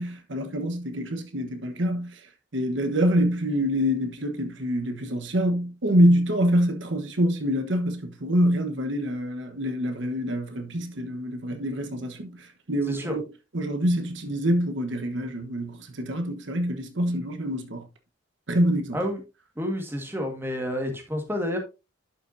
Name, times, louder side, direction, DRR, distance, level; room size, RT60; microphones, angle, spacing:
voice 1, 0.0-2.2 2.5-13.3 13.5-17.9 18.5-19.0, equal, 70° right, 1.2 m, -25 dB
voice 2, 19.6-21.6, equal, 10° right, 1.6 m, -29 dB
11.5 x 5.8 x 2.6 m
head